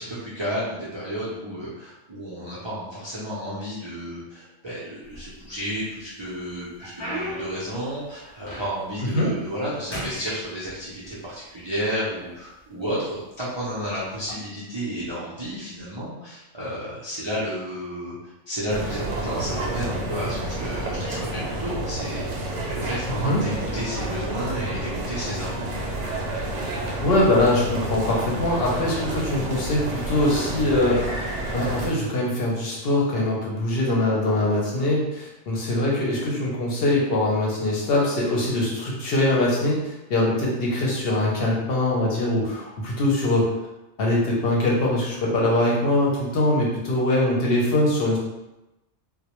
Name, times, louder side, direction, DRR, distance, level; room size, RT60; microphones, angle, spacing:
voice 1, 0.0-25.7, equal, 45° right, -9 dB, 0.3 m, -32 dB
sound 1, 5.0-5.8 6.3-9.0 9.4-9.7 9.9-11.1 12.0-12.1 12.8-13.0 14.1-14.3, equal, 30° left, 0.5 m, -36 dB
voice 2, 9.0-9.3 23.1-23.4 27.0-31.2 31.5-43.5 44.0-48.2, left 1 dB, 65° left, -3 dB, 0.7 m, -22 dB
sound 2, 18.7-31.9, right 1 dB, 75° right, 0.9 m, -30 dB
2.1 x 2.0 x 2.8 m, 0.97 s
omnidirectional pair, 1.2 m